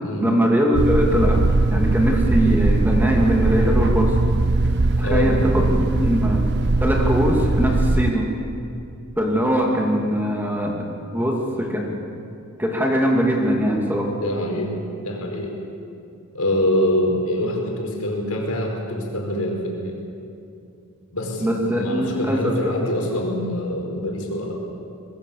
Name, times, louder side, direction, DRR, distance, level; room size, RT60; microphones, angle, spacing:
voice 1, 0.2-4.2 5.0-6.5 6.8-8.3 9.2-10.8 11.1-12.0 12.6-14.1 21.4-22.7, equal, 10° right, 0 dB, 2.5 m, -21 dB
sound 1, 0.7-8.1, right 2 dB, 50° right, 0.7 m, -20 dB
voice 2, 5.0-5.7 14.1-15.6 16.3-20.0 21.1-24.5, equal, 85° left, 0 dB, 5.0 m, -25 dB
24.5 x 21.0 x 7.1 m, 2.6 s
head